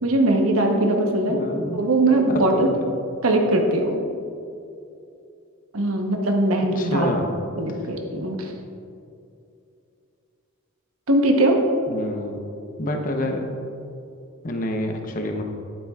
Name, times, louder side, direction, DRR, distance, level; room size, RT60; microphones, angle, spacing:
voice 1, 0.0-1.4 1.7-2.7 3.2-4.0 5.7-7.1 7.6-8.5 11.1-11.7, right 1 dB, 80° right, 2 dB, 1.0 m, -20 dB
voice 2, 1.2-1.8 2.5-2.9 6.8-7.4 8.2-8.3 11.9-12.4 12.8-13.5 14.4-15.4, left 1 dB, 40° left, 3 dB, 0.8 m, -28 dB
11.0 x 8.8 x 2.4 m, 2.6 s
head